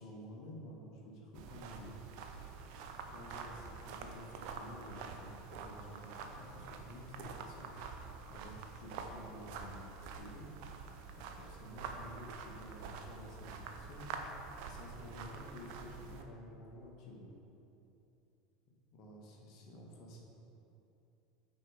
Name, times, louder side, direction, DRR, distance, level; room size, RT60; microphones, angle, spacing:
voice 1, 0.0-2.1 3.1-7.7 8.3-10.5 11.1-14.1 14.6-17.3 18.9-20.2, equal, 45° left, -1 dB, 1.4 m, -51 dB
sound 1, 1.3-16.2, right 5 dB, 50° right, 0.6 m, -47 dB
8.8 x 4.4 x 5.0 m, 2.8 s
figure-of-eight pair, 75°, 0 cm